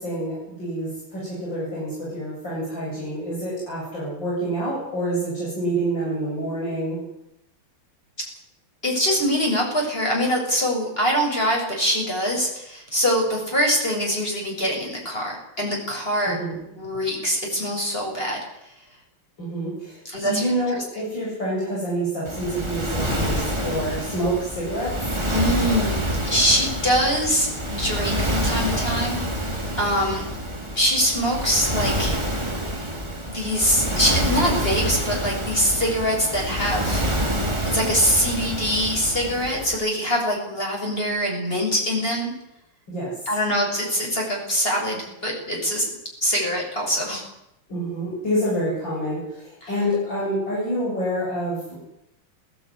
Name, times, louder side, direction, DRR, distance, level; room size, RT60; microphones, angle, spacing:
voice 1, 0.0-7.0 16.2-16.5 19.4-25.2 42.9-43.1 47.7-51.8, right 1 dB, 60° left, -6 dB, 8.7 m, -27 dB
voice 2, 8.8-18.4 20.0-20.5 25.3-27.5 27.8-29.2 29.8-30.2 30.8-32.2 33.3-37.0 37.7-42.3 43.3-45.9 46.2-47.2 49.6-49.7, equal, 25° left, -1 dB, 7.6 m, -23 dB
Waves surf, 22.2-39.7, right 1 dB, 10° right, 3.2 m, -27 dB
19.5 x 18.0 x 10.0 m, 0.83 s
omnidirectional pair, 2.3 m